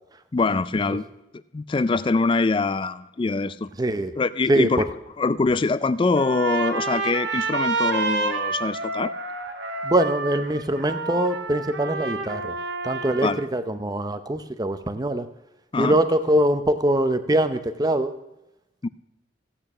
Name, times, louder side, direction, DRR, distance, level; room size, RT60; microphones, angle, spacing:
voice 1, 0.3-1.0 1.5-3.7 4.2-4.8 5.2-9.1 13.2-13.4 15.7-16.0 18.8-18.9, left 3 dB, 25° left, 17 dB, 0.3 m, -23 dB
voice 2, 3.8-4.1 4.5-4.9 9.8-12.5 12.8-15.3 15.8-18.1, right 1 dB, 20° right, 10 dB, 0.6 m, -23 dB
Trumpet, 6.1-13.5, right 3 dB, 60° right, 1.2 m, -29 dB
15.0 x 8.7 x 6.0 m, 0.91 s
head